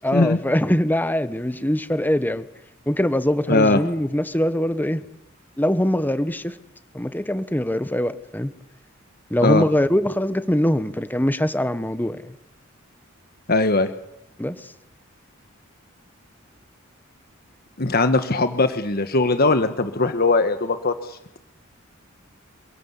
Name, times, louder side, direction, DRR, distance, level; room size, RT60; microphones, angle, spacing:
voice 1, 0.0-2.5 2.9-5.0 5.6-6.5 6.9-8.5 9.3-12.3 14.4-14.6, left 1 dB, 10° left, 12 dB, 1.1 m, -22 dB
voice 2, 3.5-3.8 9.4-9.6 13.5-13.9 17.8-21.4, left 2 dB, 50° left, 9 dB, 1.4 m, -20 dB
27.0 x 17.5 x 8.3 m, 0.79 s
head